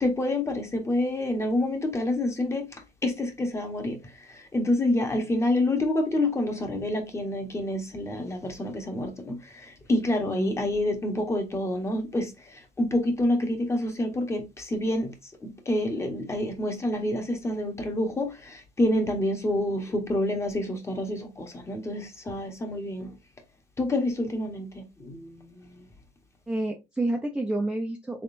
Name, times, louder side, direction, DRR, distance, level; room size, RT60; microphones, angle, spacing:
voice 1, 0.0-2.7 3.0-4.0 4.5-9.4 9.9-12.3 12.8-15.1 15.4-23.1 23.8-24.7 25.0-25.5, left 1 dB, 20° left, 1.0 m, -27 dB
voice 2, 10.3-10.7 26.5-28.2, right 1 dB, 5° right, 0.5 m, -29 dB
3.8 x 3.6 x 2.5 m
cardioid pair, 135°, 15 cm